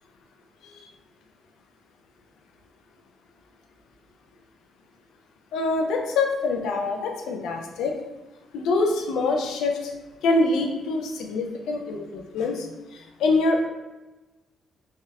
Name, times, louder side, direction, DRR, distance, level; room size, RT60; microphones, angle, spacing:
voice 1, 5.5-8.0 8.5-9.9 10.2-13.7, left 3 dB, 80° left, 2 dB, 0.4 m, -25 dB
3.2 x 2.4 x 2.7 m, 1.1 s
cardioid pair, 90°, 0 cm